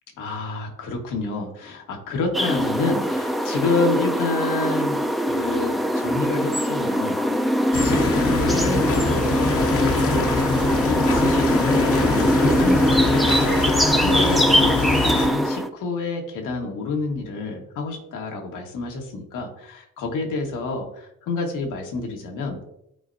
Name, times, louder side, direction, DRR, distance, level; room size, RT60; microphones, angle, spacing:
voice 1, 0.2-5.0 5.3-7.2 7.8-10.5 10.8-22.6, left 3 dB, 85° left, 2 dB, 1.6 m, -29 dB
sound 1, 2.3-15.7, equal, ahead, 0.5 m, -22 dB
sound 2, 7.7-15.3, left 3 dB, 50° left, 0.9 m, -24 dB
11.0 x 4.4 x 2.7 m, 0.77 s
cardioid pair, 90°, 30 cm